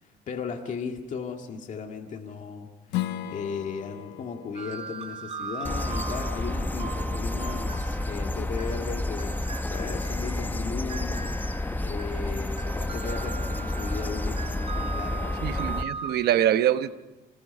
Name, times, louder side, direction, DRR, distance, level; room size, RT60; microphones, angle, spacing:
voice 1, 0.0-2.7 2.9-9.3 9.7-11.3 11.8-15.6, left 5 dB, 50° left, 3 dB, 2.0 m, -36 dB
Strum, 2.9-8.1, left 13 dB, 90° left, 1.2 m, -38 dB
sound 1, 4.5-16.2, right 4 dB, 35° right, 3.8 m, -39 dB
sound 2, 5.6-15.8, left 1 dB, 10° left, 0.8 m, -30 dB
voice 2, 15.4-16.9, right 11 dB, 70° right, 11 dB, 1.0 m, -24 dB
27.0 x 19.5 x 5.4 m, 1.1 s
cardioid pair, 110°, 17 cm